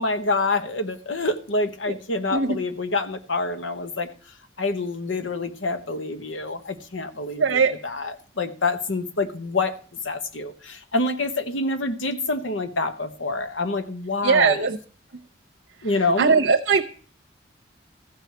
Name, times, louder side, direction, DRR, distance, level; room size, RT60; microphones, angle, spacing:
voice 1, 0.0-4.1 4.6-9.7 10.0-14.6 15.8-16.3, left 2 dB, 80° left, 9 dB, 1.1 m, -27 dB
voice 2, 7.3-7.7 14.2-14.8 16.2-16.8, right 5 dB, 75° right, 2 dB, 0.9 m, -19 dB
14.5 x 4.9 x 8.0 m, 0.42 s
head